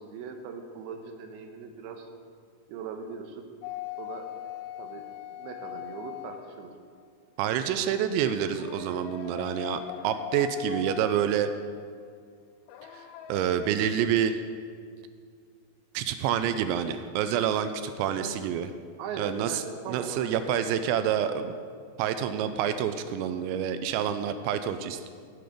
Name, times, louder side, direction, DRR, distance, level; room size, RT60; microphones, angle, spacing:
voice 1, 0.0-2.1 2.7-3.5 4.0-4.3 4.8-5.0 5.3-6.7 18.0-18.3 19.0-20.6, right 6 dB, 70° right, 4 dB, 2.6 m, -40 dB
sound 1, 3.6-7.1 8.3-11.7 12.7-13.7, left 10 dB, 80° left, 2.6 m, -41 dB
voice 2, 7.4-11.5 12.9-14.4 15.9-18.7 19.2-21.5 22.0-25.1, right 9 dB, 90° right, 10 dB, 2.9 m, -28 dB
16.0 x 7.9 x 5.1 m, 2.1 s
omnidirectional pair, 5.2 m